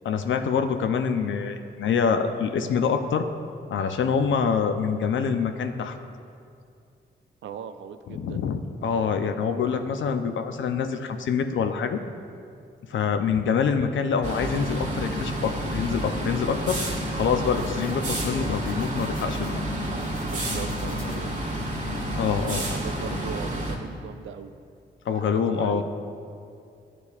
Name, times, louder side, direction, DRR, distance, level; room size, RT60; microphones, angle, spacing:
voice 1, 0.1-3.3 3.7-6.0 8.1-12.0 12.9-19.5 22.1-22.6 25.1-25.8, left 6 dB, 70° left, 7 dB, 0.5 m, -25 dB
voice 2, 7.4-8.4 20.2-21.4 22.7-24.5 25.1-25.8, right 8 dB, 70° right, 9 dB, 0.4 m, -39 dB
sound 1, 14.2-23.8, right 1 dB, 35° right, 1.4 m, -30 dB
sound 2, 17.5-19.6 20.0-21.4, left 2 dB, 45° left, 1.1 m, -45 dB
11.0 x 4.1 x 2.4 m, 2.4 s
supercardioid pair, 45°, 21 cm